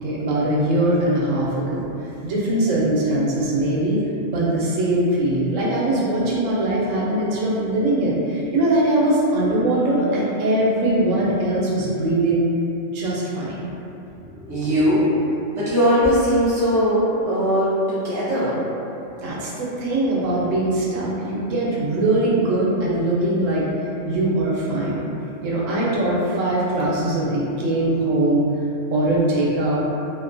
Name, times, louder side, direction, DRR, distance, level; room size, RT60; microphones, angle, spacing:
voice 1, 0.0-12.4 12.9-13.6 19.2-23.7 24.0-25.1 25.4-28.4 28.9-29.8, right 1 dB, 85° right, -6 dB, 1.0 m, -21 dB
voice 2, 14.1-15.1 15.6-18.6, equal, 5° right, -12 dB, 0.3 m, -20 dB
2.4 x 2.1 x 2.5 m, 2.8 s
omnidirectional pair, 1.3 m